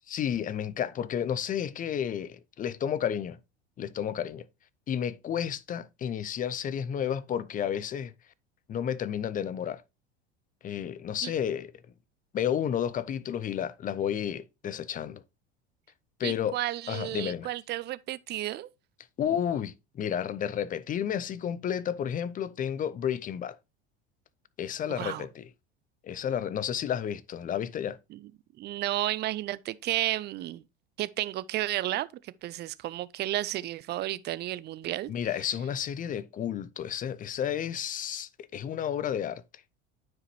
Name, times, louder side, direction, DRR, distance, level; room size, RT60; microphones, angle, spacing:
voice 1, 0.1-3.4 3.8-4.5 4.9-8.1 8.7-9.8 10.6-11.7 12.3-15.2 16.2-16.6 16.9-17.5 19.2-23.6 24.6-25.5 26.0-28.0 35.1-39.4, left 9 dB, 25° left, 0.5 m, -31 dB
voice 2, 16.2-18.7 25.0-25.3 28.1-28.2 28.6-30.6 31.0-35.1, right 15 dB, 30° right, 0.5 m, -32 dB
9.4 x 4.9 x 3.1 m
hypercardioid pair, 80°, 33 cm